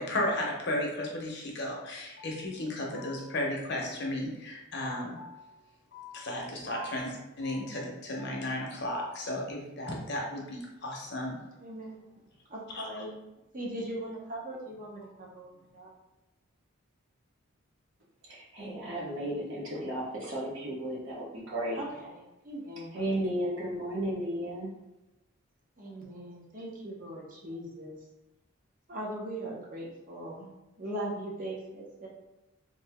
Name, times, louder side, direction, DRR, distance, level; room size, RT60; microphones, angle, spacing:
voice 1, 0.0-5.5 5.9-11.4 12.7-13.0, left 1 dB, 50° left, -1 dB, 0.8 m, -34 dB
voice 2, 11.6-12.0 12.5-13.2 13.5-15.1 15.3-15.9 21.8-22.1 22.4-22.9 25.8-28.0 28.9-30.5 30.8-32.1, right 1 dB, 40° right, -2 dB, 0.8 m, -39 dB
voice 3, 18.3-21.8 22.9-24.7, right 1 dB, 60° right, -5 dB, 1.2 m, -34 dB
3.2 x 2.8 x 3.5 m, 0.96 s
head